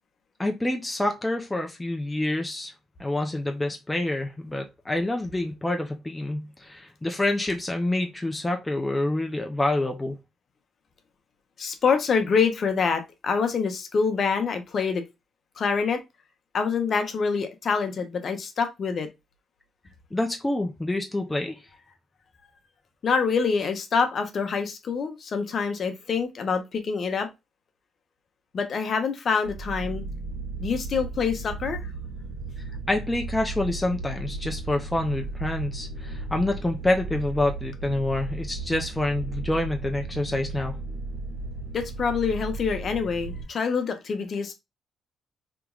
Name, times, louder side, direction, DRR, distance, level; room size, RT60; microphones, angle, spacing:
voice 1, 0.4-2.7 3.0-10.2 20.1-21.6 32.9-40.8, left 1 dB, 15° left, 0.5 m, -27 dB
voice 2, 11.6-15.0 15.6-16.0 16.5-19.1 23.0-27.3 28.5-30.0 30.6-31.9 41.7-44.5, left 5 dB, 50° left, 0.7 m, -26 dB
sound 1, 29.4-43.4, right 3 dB, 80° right, 1.8 m, -35 dB
3.4 x 2.9 x 2.3 m
cardioid pair, 90°, 0 cm